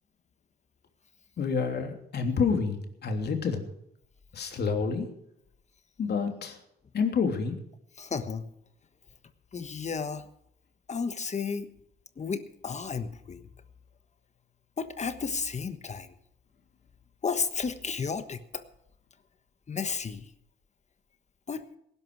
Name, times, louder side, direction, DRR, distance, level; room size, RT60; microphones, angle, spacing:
voice 1, 1.4-3.7 4.3-5.1 6.0-6.6 6.9-7.6, left 5 dB, 55° left, 5 dB, 3.1 m, -28 dB
voice 2, 8.0-8.5 9.5-10.3 10.9-11.7 12.2-13.5 14.8-16.1 17.2-18.6 19.7-20.3 21.5-21.6, left 5 dB, 35° left, 11 dB, 1.3 m, -33 dB
18.5 x 11.5 x 4.7 m, 0.78 s
cardioid pair, 90°, 20 cm